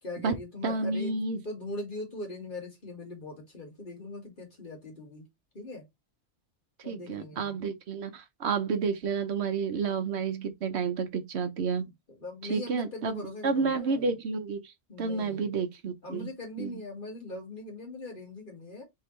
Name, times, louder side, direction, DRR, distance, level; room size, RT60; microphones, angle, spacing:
voice 1, 0.0-1.1 1.4-5.3 5.5-5.9 6.8-7.6 11.8-11.9 12.2-14.1 14.9-15.6 16.0-18.8, left 2 dB, 45° left, 2.1 m, -41 dB
voice 2, 0.6-1.4 6.9-11.8 12.4-16.3 16.6-16.7, right 5 dB, 75° right, 1.1 m, -30 dB
3.8 x 3.8 x 3.1 m
omnidirectional pair, 1.1 m